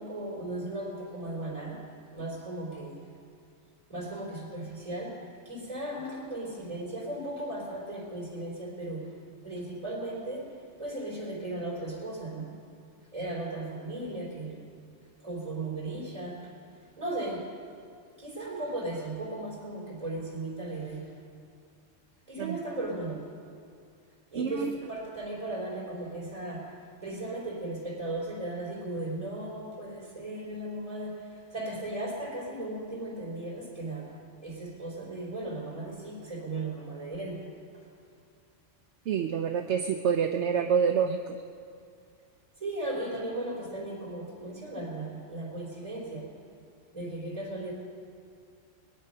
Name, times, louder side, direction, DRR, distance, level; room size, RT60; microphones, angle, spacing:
voice 1, 0.0-1.8 2.1-3.1 3.9-9.2 9.4-12.6 13.1-14.7 15.2-16.4 17.0-17.5 18.2-21.2 22.3-23.3 24.3-26.7 27.0-37.5 42.6-46.4 46.9-47.7, right 2 dB, 25° right, -4 dB, 3.8 m, -36 dB
voice 2, 24.3-24.7 39.1-41.4, right 7 dB, 70° right, 5 dB, 1.0 m, -27 dB
22.0 x 9.8 x 5.5 m, 2.3 s
omnidirectional pair, 1.3 m